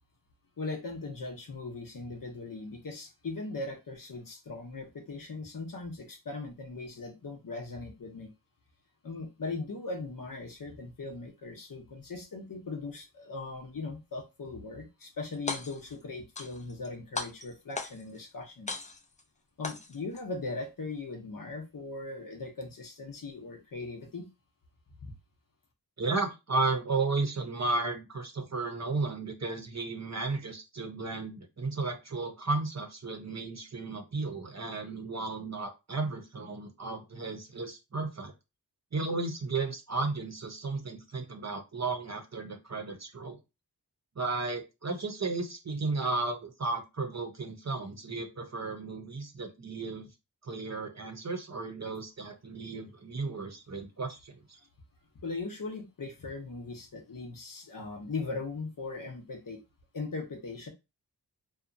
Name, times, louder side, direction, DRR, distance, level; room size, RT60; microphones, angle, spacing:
voice 1, 0.6-8.3 9.0-18.7 19.6-24.3 25.0-25.1 55.2-59.6 59.9-60.7, left 3 dB, 55° left, 0.7 m, -39 dB
sound 1, 15.3-15.9 16.3-16.9 17.1-18.2 18.7-19.2 19.6-20.2, left 3 dB, 20° left, 0.3 m, -37 dB
voice 2, 26.0-38.3 38.9-43.4 44.2-50.1 50.4-54.6, right 3 dB, 45° right, 0.7 m, -34 dB
2.7 x 2.2 x 2.5 m
wide cardioid pair, 70°, 39 cm